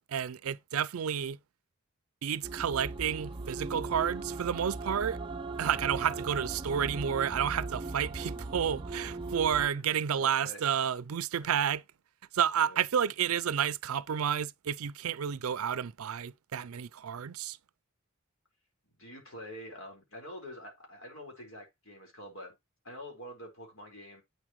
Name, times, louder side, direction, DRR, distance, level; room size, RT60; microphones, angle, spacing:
voice 1, 0.0-1.4 2.2-5.2 5.6-11.8 12.3-17.6, right 8 dB, 85° right, 0.4 m, -31 dB
sound 1, 2.4-9.7, right 3 dB, 25° right, 0.5 m, -38 dB
voice 2, 9.7-10.6 11.4-11.6 12.6-12.8 19.0-22.5 22.8-24.2, equal, 65° left, 4.5 m, -47 dB
8.4 x 7.3 x 3.1 m
head